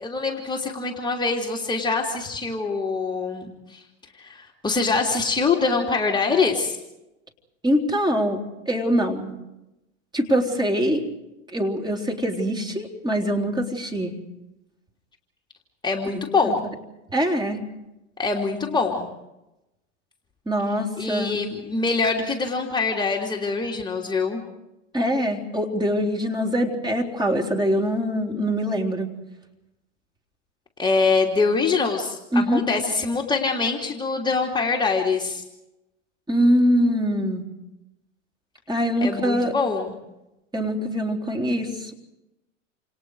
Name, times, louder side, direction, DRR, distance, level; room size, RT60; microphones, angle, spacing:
voice 1, 0.0-3.8 4.2-6.8 15.8-16.6 18.2-19.1 21.0-24.4 30.8-35.4 39.0-40.0, left 4 dB, 10° left, 0 dB, 3.0 m, -24 dB
voice 2, 7.6-9.4 10.1-11.0 11.5-14.1 16.1-16.5 17.1-17.6 20.5-21.4 24.9-29.1 32.3-32.6 36.3-37.4 38.7-39.5 40.5-41.9, equal, 10° right, 1 dB, 3.8 m, -23 dB
29.0 x 27.5 x 4.9 m, 0.95 s
hypercardioid pair, 100°, 38 cm